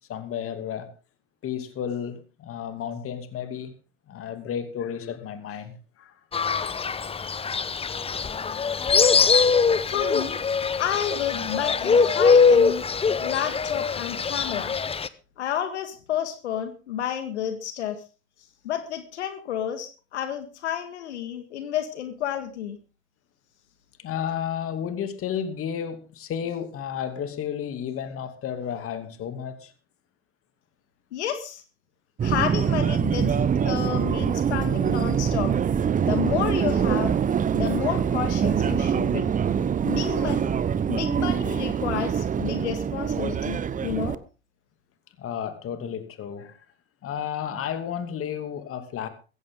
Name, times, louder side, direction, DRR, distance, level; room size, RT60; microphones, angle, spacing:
voice 1, 0.1-0.9 1.4-3.7 4.1-6.1 24.0-29.7 45.2-46.6 47.0-49.1, left 8 dB, 40° left, 2.7 m, -32 dB
Fowl, 6.3-15.1, left 5 dB, 15° left, 0.9 m, -22 dB
voice 2, 9.8-10.4 10.8-12.9 13.2-14.8 15.4-18.0 18.6-22.8 31.1-31.6 32.2-35.5 36.0-37.2 37.5-39.3 39.8-40.4 40.9-44.2, left 9 dB, 85° left, 1.9 m, -30 dB
Subway metro underground, 32.2-44.2, right 7 dB, 25° right, 0.9 m, -24 dB
15.5 x 15.5 x 3.8 m
hypercardioid pair, 90°, 33 cm